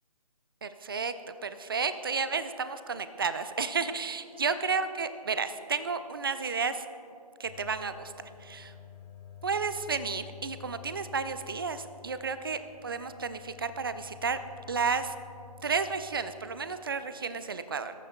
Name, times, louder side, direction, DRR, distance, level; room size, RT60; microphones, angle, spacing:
voice 1, 0.6-6.8 7.4-8.1 8.4-8.7 9.4-14.4 14.7-15.2 15.6-17.9, right 5 dB, 35° right, 11 dB, 0.5 m, -32 dB
sound 1, 7.4-17.0, left 9 dB, 15° left, 1.8 m, -50 dB
21.5 x 13.5 x 2.2 m, 2.6 s
figure-of-eight pair, 150°, 21 cm